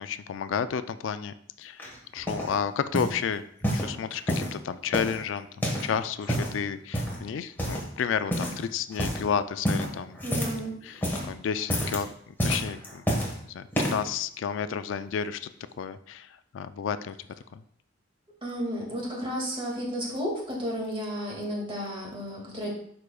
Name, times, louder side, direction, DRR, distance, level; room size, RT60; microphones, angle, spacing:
voice 1, 0.0-1.8 2.1-3.4 3.7-10.2 10.8-13.0 13.3-15.5 15.8-17.2 17.5-17.6, left 7 dB, 70° left, 12 dB, 0.3 m, -31 dB
sound 1, 1.8-2.5 2.9-3.2 3.6-4.6 4.9-5.9 6.2-6.6 6.9-7.2 7.6-8.0 8.3-8.6 8.9-9.2 9.6-10.7 10.9-11.3 11.6-12.0 12.4-13.3 13.7-14.1 14.8-14.9, equal, 10° left, 1.4 m, -29 dB
voice 2, 10.2-10.7 18.4-22.7, equal, 30° right, -2 dB, 2.1 m, -32 dB
11.5 x 4.9 x 2.3 m, 0.66 s
head